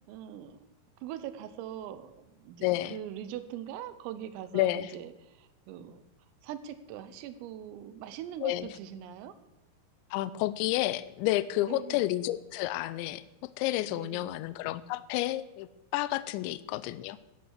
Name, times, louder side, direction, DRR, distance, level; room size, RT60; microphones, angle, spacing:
voice 1, 0.1-0.6 1.0-6.0 6.4-9.3 11.6-12.1 13.9-14.3, right 10 dB, 85° right, 12 dB, 3.7 m, -42 dB
voice 2, 2.6-2.9 4.5-4.9 8.4-8.7 10.1-13.2 13.6-15.7 15.9-17.2, left 16 dB, 90° left, 16 dB, 2.6 m, -30 dB
13.5 x 11.0 x 6.5 m, 0.97 s
omnidirectional pair, 5.9 m